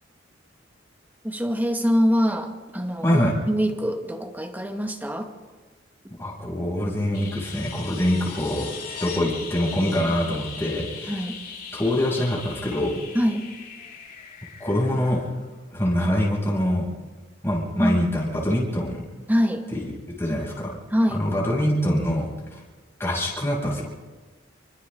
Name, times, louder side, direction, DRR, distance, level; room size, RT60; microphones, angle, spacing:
voice 1, 1.2-3.2 3.5-5.3 11.1-11.4 13.1-13.4 17.8-18.0 19.3-19.7 20.9-21.3, equal, 10° right, 4 dB, 2.0 m, -24 dB
voice 2, 3.0-3.3 6.2-8.7 9.0-11.2 11.7-13.0 14.6-15.2 15.7-16.9 17.4-19.0 19.7-19.9 20.2-20.7 21.1-22.6 23.0-23.9, left 1 dB, 15° left, -5 dB, 7.4 m, -24 dB
sound 1, 7.1-15.8 18.2-18.3, left 5 dB, 50° left, 4.6 m, -39 dB
29.5 x 25.5 x 3.9 m, 1.3 s
head